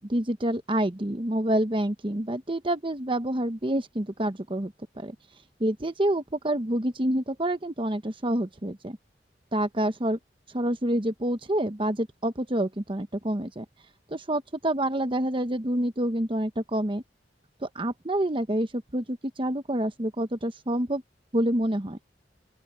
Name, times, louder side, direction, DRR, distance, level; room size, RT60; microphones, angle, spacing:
voice 1, 0.0-5.1 5.6-9.0 9.5-10.2 10.5-13.6 14.1-17.0 17.6-21.0 21.3-22.0, right 1 dB, 30° right, 1.1 m, -27 dB
open air
head